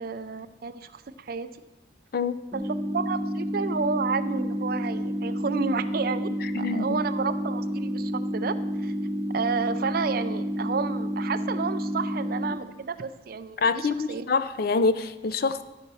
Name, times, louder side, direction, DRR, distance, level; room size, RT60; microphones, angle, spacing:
voice 1, 0.0-1.5 2.5-6.3 6.6-8.9 9.3-14.3, right 5 dB, 50° right, 11 dB, 0.5 m, -31 dB
sound 1, 2.5-12.5, equal, 5° right, 0.8 m, -30 dB
voice 2, 6.5-7.0 13.6-15.6, left 4 dB, 55° left, 13 dB, 0.4 m, -26 dB
11.5 x 4.2 x 6.8 m, 1.1 s
head